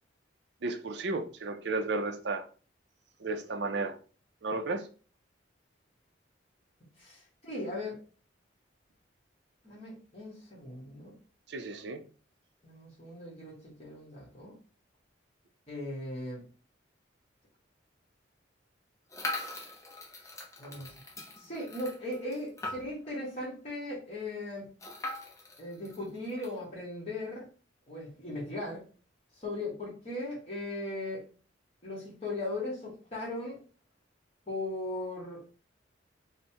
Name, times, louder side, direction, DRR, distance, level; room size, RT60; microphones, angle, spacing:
voice 1, 0.6-2.5 3.2-4.0 4.4-4.9 11.5-12.0, right 3 dB, 60° right, 0.5 m, -33 dB
voice 2, 7.0-8.0 9.6-11.1 12.6-14.6 15.7-16.4 20.6-20.9 21.4-24.7 25.6-27.5 27.9-28.8 29.3-31.2 31.8-33.6 34.5-35.4, left 1 dB, 35° left, 1.3 m, -38 dB
sound 1, 19.1-23.1 23.5-23.6 23.8-23.9 24.8-26.5, left 2 dB, 15° left, 0.8 m, -41 dB
5.3 x 2.2 x 2.8 m
head